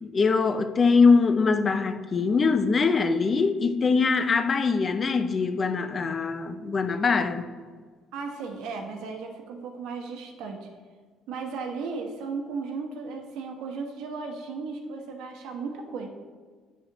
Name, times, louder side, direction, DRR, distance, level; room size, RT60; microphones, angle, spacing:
voice 1, 0.0-7.5, left 4 dB, 25° left, 0.3 m, -22 dB
voice 2, 8.1-10.7 11.3-16.1, right 4 dB, 80° right, 1.0 m, -35 dB
10.0 x 6.3 x 2.9 m
cardioid pair, 175°, 0 cm